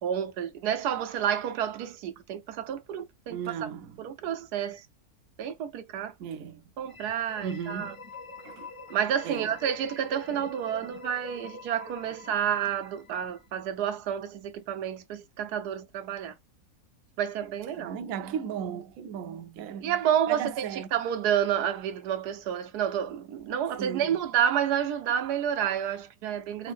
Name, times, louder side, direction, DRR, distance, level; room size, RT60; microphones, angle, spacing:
voice 1, 0.0-3.7 4.0-4.9 5.4-6.1 6.8-7.9 8.9-16.4 17.2-18.0 19.8-26.7, right 9 dB, 85° right, 1.3 m, -30 dB
voice 2, 3.3-4.0 6.2-6.6 7.4-8.0 8.4-8.7 9.2-9.6 17.8-19.9 20.3-20.9 23.8-24.2 26.6-26.7, right 8 dB, 70° right, 0.9 m, -36 dB
sound 1, 6.8-13.6, left 3 dB, 40° left, 1.0 m, -45 dB
3.5 x 2.8 x 3.5 m
omnidirectional pair, 1.6 m